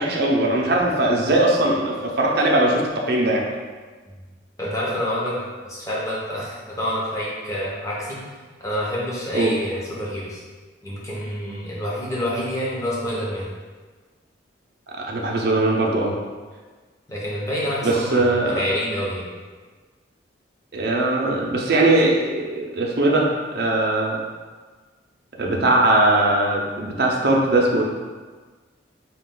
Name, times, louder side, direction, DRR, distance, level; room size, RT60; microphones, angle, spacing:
voice 1, 0.0-3.5 9.3-9.5 14.9-16.1 17.8-18.6 20.7-24.2 25.4-27.8, right 2 dB, 55° right, -1 dB, 0.6 m, -20 dB
voice 2, 4.6-8.2 8.6-10.4 10.8-13.5 17.1-19.3, equal, 15° left, -7 dB, 0.9 m, -27 dB
4.2 x 2.4 x 3.7 m, 1.4 s
head